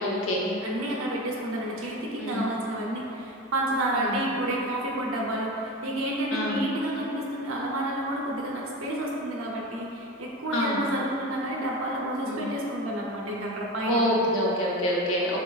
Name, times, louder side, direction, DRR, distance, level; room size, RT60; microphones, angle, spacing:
voice 1, 0.0-0.5 2.2-2.5 4.0-4.2 6.3-6.6 10.5-10.9 12.3-12.4 13.9-15.4, equal, 75° left, -4 dB, 0.8 m, -26 dB
voice 2, 0.6-14.0, right 1 dB, 85° right, -3 dB, 0.7 m, -30 dB
6.4 x 3.0 x 2.4 m, 2.8 s
head